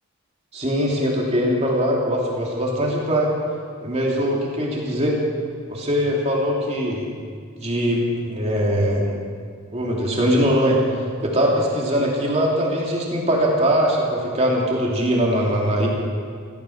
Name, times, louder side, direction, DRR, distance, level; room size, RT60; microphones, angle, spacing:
voice 1, 0.5-3.3 3.8-5.2 5.7-7.0 7.6-9.1 9.7-10.8 11.2-15.9, equal, 30° right, -2 dB, 2.7 m, -21 dB
16.5 x 14.5 x 5.9 m, 2.1 s
head